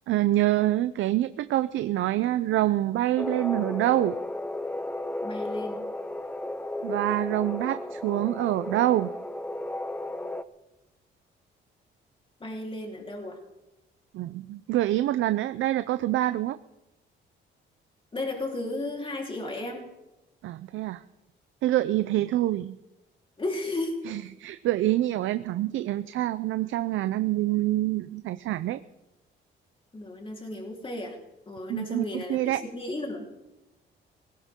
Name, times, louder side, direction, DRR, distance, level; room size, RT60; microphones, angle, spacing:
voice 1, 0.1-4.2 6.8-9.1 14.1-16.6 20.4-21.0 21.6-22.7 24.0-28.8 31.7-32.6, right 14 dB, 80° right, 12 dB, 0.6 m, -26 dB
sound 1, 3.2-10.4, left 1 dB, 10° left, 0.8 m, -34 dB
voice 2, 5.2-5.9 12.4-13.4 18.1-19.9 23.4-24.0 29.9-31.2 31.5-33.3, left 2 dB, 25° left, 0 dB, 3.9 m, -34 dB
19.5 x 17.5 x 3.7 m, 0.96 s
cardioid pair, 90°, 20 cm